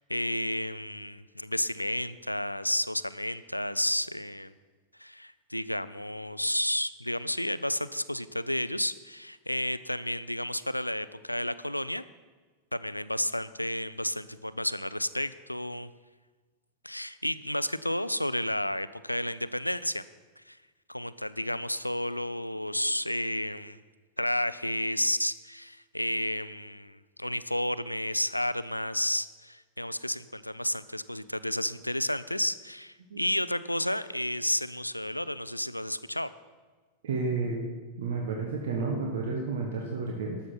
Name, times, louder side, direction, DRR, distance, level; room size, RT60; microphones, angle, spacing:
voice 1, 0.0-4.5 5.0-12.0 12.7-15.9 16.8-20.0 20.4-20.6 20.9-23.8 24.2-36.3, left 1 dB, 90° left, 15 dB, 0.4 m, -31 dB
voice 2, 37.0-37.6 38.0-40.4, right 4 dB, 60° right, 0 dB, 1.3 m, -31 dB
12.5 x 7.1 x 5.8 m, 1.3 s
figure-of-eight pair, 90°, 0 cm